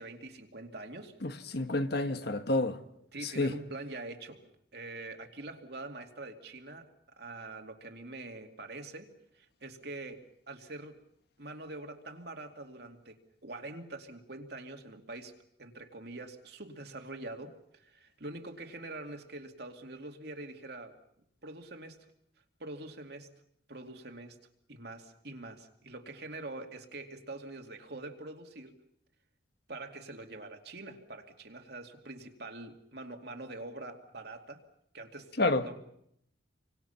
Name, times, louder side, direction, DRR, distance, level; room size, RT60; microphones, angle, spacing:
voice 1, 0.0-1.1 3.1-4.4 4.7-6.9 7.2-9.1 9.3-11.0 11.4-15.3 15.6-21.0 21.4-22.0 22.6-23.4 23.7-24.4 24.7-28.8 29.7-34.6 34.9-35.3 35.6-35.7, right 2 dB, 55° right, 2.6 m, -44 dB
voice 2, 1.2-2.8 3.2-3.6 35.4-35.7, left 2 dB, 55° left, 1.4 m, -29 dB
29.0 x 25.0 x 5.8 m
head